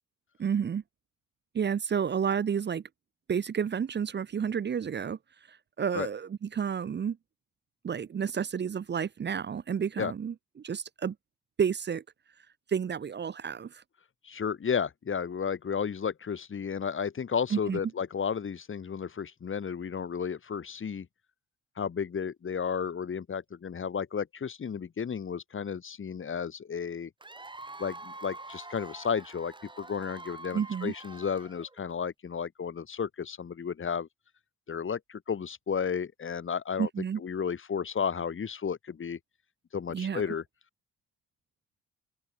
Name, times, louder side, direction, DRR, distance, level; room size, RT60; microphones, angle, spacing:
voice 1, 0.4-0.8 1.5-2.8 3.3-5.2 5.5-7.2 7.8-11.1 11.6-12.0 12.7-13.8 17.5-17.8 30.5-30.9 36.8-37.2 39.9-40.2, right 7 dB, 35° right, 0.8 m, -30 dB
voice 2, 14.2-21.1 21.8-27.1 27.8-34.1 34.7-36.9 37.2-39.2 39.7-40.4, left 6 dB, 40° left, 3.0 m, -33 dB
Cheering / Applause / Crowd, 27.2-31.9, right 2 dB, 15° right, 3.1 m, -45 dB
open air
cardioid pair, 90°, 30 cm